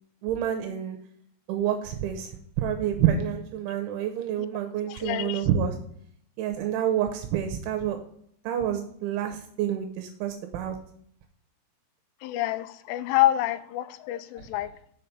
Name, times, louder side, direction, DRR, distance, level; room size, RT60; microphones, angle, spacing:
voice 1, 0.2-1.0 1.5-2.3 2.6-5.8 6.4-8.0 8.4-10.8, right 9 dB, 80° right, 3.1 m, -28 dB
voice 2, 4.9-5.5 12.2-14.7, left 14 dB, 85° left, 3.0 m, -27 dB
7.3 x 5.7 x 6.8 m
omnidirectional pair, 5.5 m